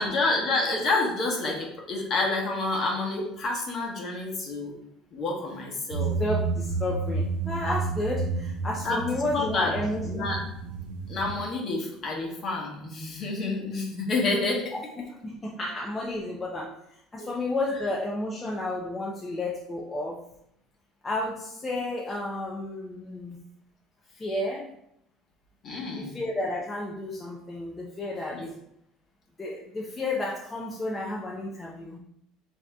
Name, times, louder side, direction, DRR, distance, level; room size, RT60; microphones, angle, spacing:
voice 1, 0.0-4.7 5.1-6.2 8.8-9.8 10.0-10.4 11.1-14.7 17.2-17.3 25.6-26.1 28.3-28.5, left 3 dB, 40° left, 0 dB, 1.1 m, -28 dB
sound 1, 5.9-11.4, right 4 dB, 90° right, 0.5 m, -31 dB
voice 2, 6.2-10.4 14.7-20.2 21.0-23.4 24.1-24.7 26.0-28.5 29.4-32.0, left 2 dB, 20° left, -3 dB, 0.5 m, -32 dB
7.4 x 2.8 x 2.2 m, 0.77 s
cardioid pair, 135°, 0 cm